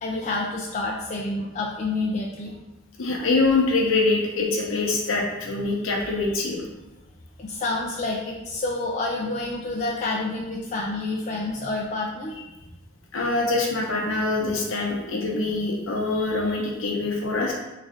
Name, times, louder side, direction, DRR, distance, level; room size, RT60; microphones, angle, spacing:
voice 1, 0.0-2.5 5.6-5.7 7.4-12.3, left 2 dB, 35° left, -3 dB, 0.3 m, -28 dB
voice 2, 3.0-6.6 13.1-17.5, left 3 dB, 70° left, -1 dB, 0.7 m, -24 dB
3.1 x 2.5 x 3.6 m, 1.0 s
head